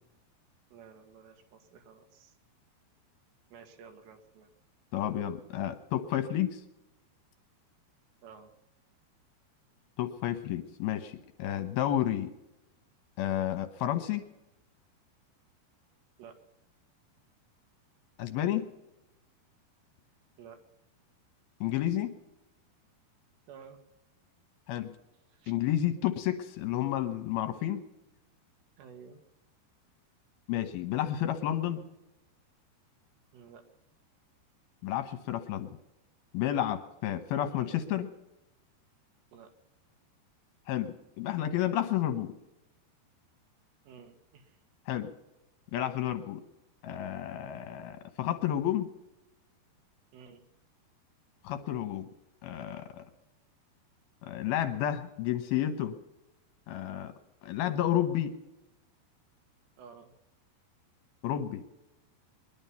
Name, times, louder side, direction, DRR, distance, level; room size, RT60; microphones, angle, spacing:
voice 1, 0.7-2.4 3.5-4.5 8.2-8.5 16.2-16.4 20.4-20.6 23.5-23.8 25.3-25.5 28.8-29.2 33.3-33.6 37.5-37.7 39.3-39.5 43.9-44.6 50.1-50.4 59.8-60.1, right 6 dB, 85° right, 5 dB, 3.9 m, -52 dB
voice 2, 4.9-6.6 10.0-12.3 13.2-14.3 18.2-18.7 21.6-22.1 24.7-24.9 25.5-27.8 30.5-31.8 34.8-35.7 36.3-38.1 40.7-42.3 44.9-45.1 45.7-46.4 46.8-48.9 51.4-52.1 52.4-53.1 54.2-56.0 56.7-57.1 57.4-58.3 61.2-61.6, left 12 dB, 70° left, 8 dB, 2.7 m, -31 dB
21.5 x 11.0 x 5.5 m, 0.93 s
omnidirectional pair, 4.9 m